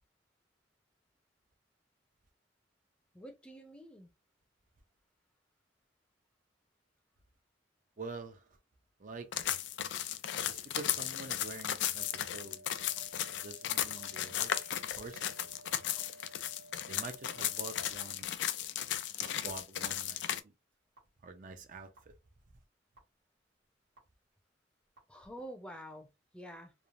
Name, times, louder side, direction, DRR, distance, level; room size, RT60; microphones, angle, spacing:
voice 1, 3.1-4.1 25.1-26.7, equal, 5° left, 0.5 m, -48 dB
voice 2, 8.0-8.4 9.0-9.5 10.5-12.8 13.4-15.5 16.9-18.3 19.2-20.2 21.2-21.9, right 3 dB, 45° right, 0.4 m, -46 dB
sound 1, 9.3-20.4, left 11 dB, 75° left, 0.3 m, -35 dB
sound 2, 12.0-18.0 19.0-19.1 20.0-20.1 21.0-21.1 22.0-22.1 23.0-23.1 24.0-24.1 25.0-25.1, right 1 dB, 65° right, 1.3 m, -56 dB
3.1 x 2.0 x 2.4 m
head